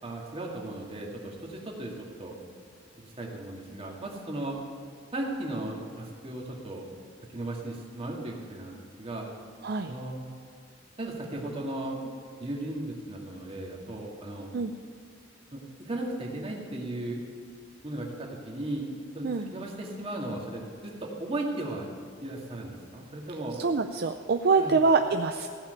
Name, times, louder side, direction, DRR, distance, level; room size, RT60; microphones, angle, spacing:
voice 1, 0.0-2.4 3.0-4.6 5.1-6.9 7.3-9.3 9.9-10.2 11.0-12.1 12.4-14.5 15.5-17.2 17.8-18.9 19.1-21.9 22.2-23.6 24.6-24.8, right 1 dB, 30° right, -2 dB, 2.1 m, -36 dB
voice 2, 9.6-9.9 14.5-14.7 19.2-19.5 23.6-25.5, right 4 dB, 55° right, 6 dB, 0.5 m, -25 dB
15.5 x 5.9 x 9.1 m, 2.2 s
head